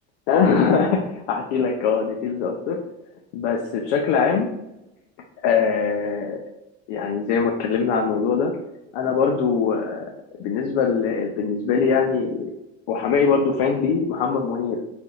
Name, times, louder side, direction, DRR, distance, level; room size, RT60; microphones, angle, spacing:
voice 1, 0.3-2.8 3.3-4.5 5.4-6.4 6.9-8.5 8.9-10.0 10.4-12.5 12.9-14.8, left 5 dB, 85° left, 1 dB, 0.6 m, -22 dB
3.8 x 3.4 x 2.3 m, 0.90 s
cardioid pair, 145°, 30 cm